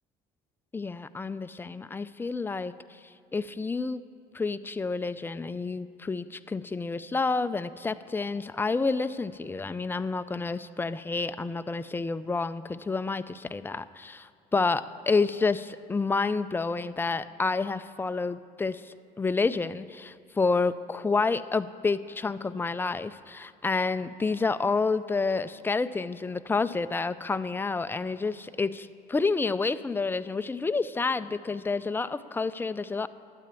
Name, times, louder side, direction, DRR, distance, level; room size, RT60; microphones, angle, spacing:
voice 1, 0.7-3.0 3.3-4.0 4.3-33.1, left 4 dB, 10° left, 13 dB, 0.4 m, -29 dB
12.5 x 8.7 x 9.0 m, 2.4 s
cardioid pair, 110°, 17 cm